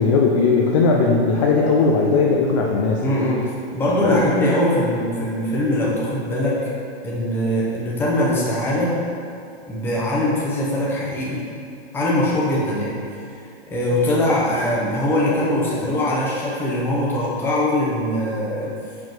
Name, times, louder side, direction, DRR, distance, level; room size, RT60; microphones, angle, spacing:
voice 1, 0.0-3.0 4.0-4.2, left 4 dB, 30° left, -1 dB, 0.5 m, -18 dB
voice 2, 3.0-6.6 7.0-8.9 9.7-11.5 11.9-12.9 13.7-18.7, left 1 dB, 5° left, -7 dB, 0.9 m, -21 dB
5.7 x 5.3 x 4.6 m, 2.5 s
hypercardioid pair, 150°, 33 cm